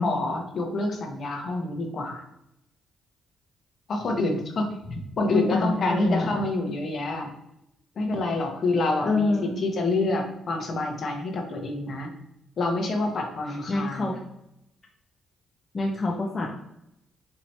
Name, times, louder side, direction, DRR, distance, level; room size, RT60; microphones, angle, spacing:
voice 1, 0.0-2.2 3.9-4.7 5.2-7.3 8.0-9.3 9.6-12.1 12.6-14.1, left 2 dB, 55° left, 2 dB, 1.0 m, -27 dB
voice 2, 5.3-6.4 9.0-9.6 13.5-14.2 15.7-16.5, left 2 dB, 30° left, -2 dB, 0.7 m, -26 dB
4.5 x 2.9 x 2.8 m, 0.81 s
cardioid pair, 90°, 0 cm